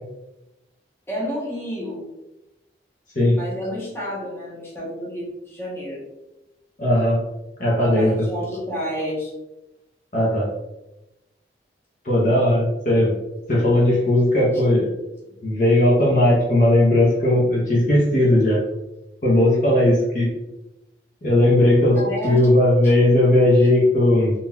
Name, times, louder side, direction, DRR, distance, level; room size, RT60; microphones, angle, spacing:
voice 1, 1.1-2.0 3.4-6.0 7.8-9.3 21.9-22.5, equal, 15° left, -6 dB, 0.9 m, -30 dB
voice 2, 6.8-7.2 7.6-8.1 10.1-10.5 12.0-13.1 13.5-14.9 15.4-18.6 19.2-20.3 21.2-22.0 22.2-24.3, left 1 dB, 45° left, -5 dB, 0.7 m, -17 dB
3.7 x 2.7 x 2.2 m, 0.96 s
head